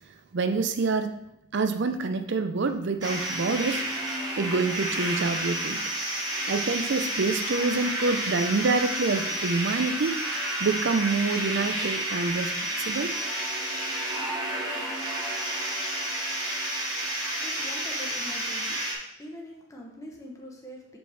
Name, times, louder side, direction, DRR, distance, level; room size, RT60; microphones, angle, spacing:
voice 1, 0.3-1.1 1.5-3.9 4.4-5.8 6.5-13.1, right 4 dB, 55° right, 8 dB, 0.5 m, -27 dB
sound 1, 3.0-18.9, right 1 dB, 20° right, 1.2 m, -30 dB
voice 2, 17.4-18.9 19.2-21.0, equal, 15° left, -2 dB, 0.8 m, -43 dB
6.5 x 5.1 x 3.4 m, 0.83 s
head